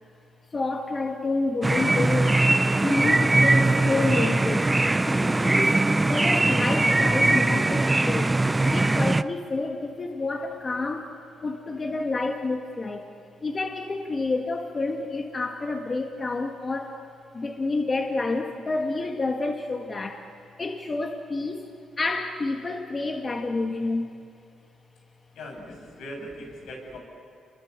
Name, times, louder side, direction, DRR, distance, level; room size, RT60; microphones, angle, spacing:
voice 1, 0.5-2.4 2.8-4.7 5.0-5.8 6.1-8.4 8.6-11.1 11.4-13.1 13.4-17.0 17.3-20.3 20.6-21.7 22.0-24.1, left 3 dB, 30° left, 3 dB, 1.8 m, -29 dB
sound 1, 1.6-9.2, right 2 dB, 15° right, 0.6 m, -21 dB
voice 2, 25.3-27.0, equal, 80° left, 1 dB, 6.8 m, -40 dB
28.5 x 22.5 x 8.2 m, 2.6 s
cardioid pair, 95°, 0 cm